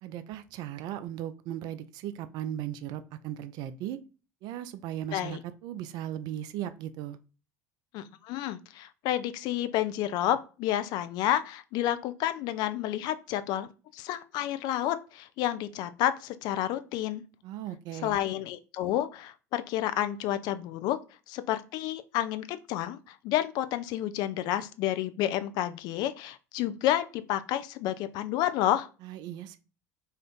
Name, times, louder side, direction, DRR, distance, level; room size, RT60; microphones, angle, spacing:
voice 1, 0.0-4.0 4.4-7.2 17.4-18.2 29.0-29.6, right 11 dB, 55° right, 0.4 m, -37 dB
voice 2, 7.9-13.7 13.9-17.2 18.0-21.0 21.3-28.9, left 12 dB, 55° left, 0.3 m, -30 dB
2.5 x 2.5 x 3.4 m
hypercardioid pair, 70°, 9 cm